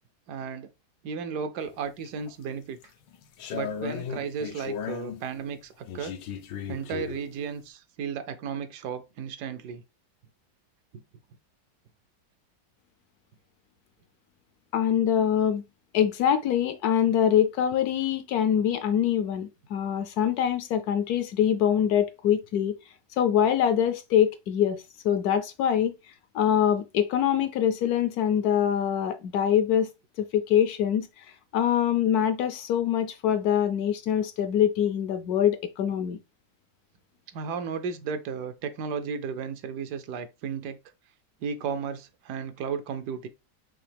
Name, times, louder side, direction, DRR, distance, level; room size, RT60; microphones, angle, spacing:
voice 1, 0.3-0.7 1.0-2.8 3.5-6.1 6.7-9.8 37.3-40.8 41.4-43.3, right 6 dB, 75° right, 1.2 m, -34 dB
sound 1, 1.7-2.3 2.8-5.2 5.9-7.3, left 7 dB, 90° left, 1.3 m, -36 dB
voice 2, 14.7-15.6 15.9-22.8 23.2-25.9 26.3-29.9 30.2-31.3 31.5-36.2, left 9 dB, 70° left, 1.0 m, -24 dB
5.7 x 2.8 x 3.4 m
omnidirectional pair, 1.9 m